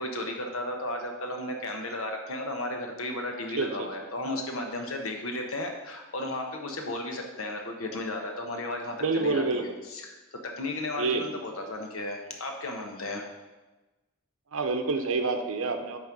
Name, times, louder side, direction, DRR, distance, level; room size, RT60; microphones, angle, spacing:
voice 1, 0.0-13.2, left 1 dB, 70° left, 3 dB, 1.2 m, -34 dB
voice 2, 3.6-3.9 9.0-9.6 11.0-11.3 14.5-16.0, right 3 dB, 65° right, 7 dB, 0.7 m, -27 dB
8.9 x 3.2 x 6.0 m, 1.1 s
head